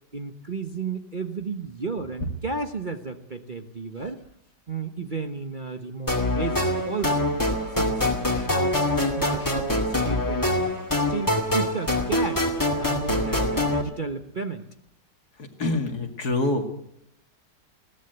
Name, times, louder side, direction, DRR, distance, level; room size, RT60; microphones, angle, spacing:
voice 1, 0.1-4.2 4.7-7.3 7.7-12.5 12.8-14.6, right 4 dB, 30° right, 4 dB, 1.1 m, -33 dB
sound 1, 6.1-13.8, left 1 dB, 10° left, 2.3 m, -24 dB
voice 2, 15.6-16.6, left 2 dB, 60° left, 4 dB, 2.8 m, -25 dB
21.5 x 17.5 x 8.0 m, 0.77 s
omnidirectional pair, 1.9 m